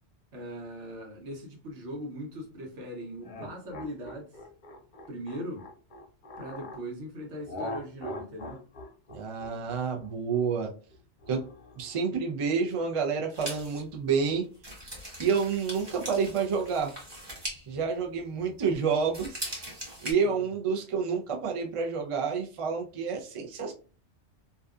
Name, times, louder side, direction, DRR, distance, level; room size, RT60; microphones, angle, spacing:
voice 1, 0.3-4.3 5.1-5.6 6.4-8.7 20.2-20.5, equal, 80° right, 1.2 m, -40 dB
sound 1, 3.2-6.8 7.5-12.0, left 1 dB, 55° left, 0.6 m, -42 dB
voice 2, 9.1-10.7 11.3-11.4 11.8-14.5 15.2-16.9 17.7-19.4 20.0-23.7, right 5 dB, 50° right, 0.4 m, -29 dB
sound 2, 13.3-18.7 19.0-20.1, right 1 dB, 25° right, 0.7 m, -41 dB
2.6 x 2.2 x 2.3 m
omnidirectional pair, 1.2 m